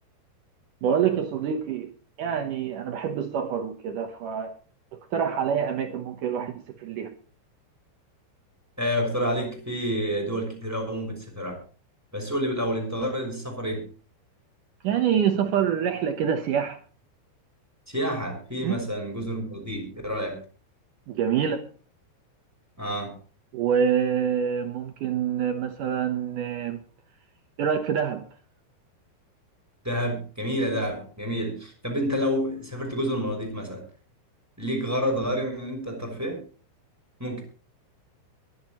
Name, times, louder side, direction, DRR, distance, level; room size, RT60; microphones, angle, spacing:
voice 1, 0.8-1.9 2.2-4.6 4.9-7.1 14.8-16.8 18.6-18.9 21.1-21.7 23.5-26.8 27.6-28.3, right 8 dB, 80° right, 1.8 m, -26 dB
voice 2, 8.8-11.6 12.1-13.9 17.9-20.4 22.8-23.1 29.8-33.8 34.6-36.4 37.2-37.4, equal, 5° right, 5.5 m, -29 dB
23.0 x 11.0 x 3.1 m
omnidirectional pair, 5.5 m